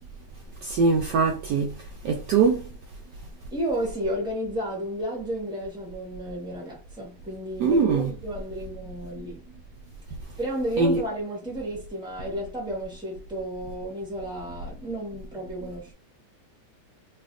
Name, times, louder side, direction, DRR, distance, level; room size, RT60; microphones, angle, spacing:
voice 1, 0.6-1.7 2.0-2.6 7.6-8.1 10.8-11.0, right 4 dB, 80° right, 0.9 m, -22 dB
voice 2, 3.5-9.4 10.4-15.9, right 1 dB, 5° right, 0.5 m, -32 dB
3.3 x 2.8 x 2.4 m
omnidirectional pair, 2.3 m